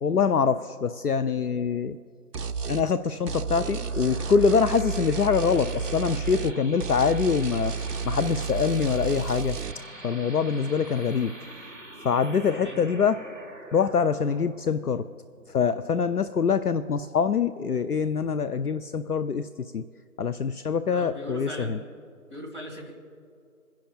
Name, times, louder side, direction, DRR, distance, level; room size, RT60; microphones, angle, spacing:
voice 1, 0.0-2.0 2.7-7.7 8.0-9.6 10.0-11.3 12.0-13.2 13.7-15.0 15.5-19.8 20.2-21.8, left 6 dB, 70° left, 12 dB, 0.5 m, -24 dB
sound 1, 2.3-2.9 3.3-6.6 6.8-9.7, right 5 dB, 75° right, 0.6 m, -31 dB
sound 2, 3.1-16.2, right 1 dB, 50° right, 1.5 m, -44 dB
voice 2, 12.3-12.8 20.9-21.8 22.3-22.9, equal, 30° left, -4 dB, 2.3 m, -39 dB
27.0 x 10.5 x 2.4 m, 2.4 s
figure-of-eight pair, 180°, 47 cm